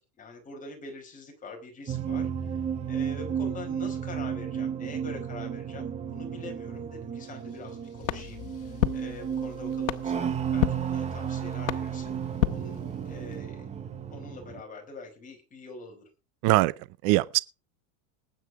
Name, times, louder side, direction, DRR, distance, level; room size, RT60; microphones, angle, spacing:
voice 1, 0.2-12.2 12.5-13.7 14.1-16.0, left 3 dB, 20° left, 4.8 m, -44 dB
sound 1, 1.9-14.6, right 8 dB, 15° right, 0.9 m, -33 dB
Car / Engine starting / Accelerating revving vroom, 7.2-13.7, left 12 dB, 35° left, 4.7 m, -50 dB
sound 2, 8.0-13.4, left 16 dB, 80° left, 1.4 m, -33 dB
voice 2, 16.4-17.4, right 19 dB, 50° right, 0.6 m, -23 dB
19.5 x 9.0 x 4.7 m
supercardioid pair, 155°, 40 cm